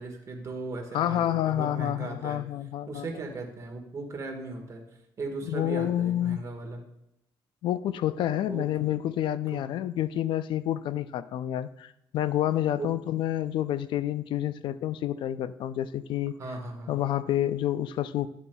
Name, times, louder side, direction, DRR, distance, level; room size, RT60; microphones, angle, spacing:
voice 1, 0.0-1.2 1.5-2.4 2.9-4.8 5.2-6.8 8.4-8.7 9.5-9.6 12.8-12.9 16.4-17.0, right 3 dB, 35° right, 2 dB, 1.5 m, -37 dB
voice 2, 0.9-3.1 5.5-6.4 7.6-16.3 16.9-18.3, left 12 dB, 70° left, 14 dB, 0.3 m, -28 dB
11.5 x 6.9 x 2.3 m, 0.83 s
cardioid pair, 140°, 9 cm